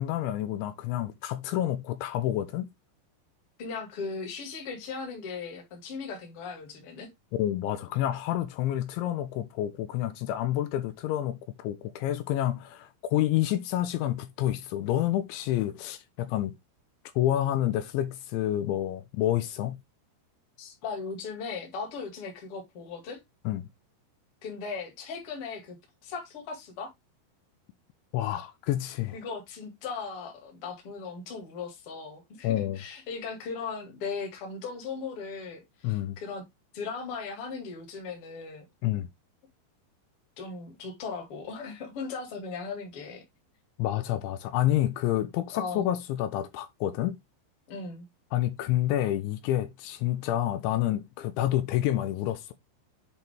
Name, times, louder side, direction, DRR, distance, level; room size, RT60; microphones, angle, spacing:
voice 1, 0.0-2.7 7.4-16.5 17.2-19.8 23.5-23.6 28.1-29.2 32.4-32.8 35.8-36.2 38.8-39.1 43.8-47.2 48.3-52.5, left 13 dB, 80° left, 3.0 m, -28 dB
voice 2, 3.6-7.1 20.6-23.2 24.4-25.8 26.0-26.9 29.1-36.4 36.7-38.6 40.4-43.2 45.5-45.9 47.7-48.1, left 5 dB, 40° left, 2.2 m, -38 dB
7.9 x 4.5 x 3.5 m
omnidirectional pair, 5.5 m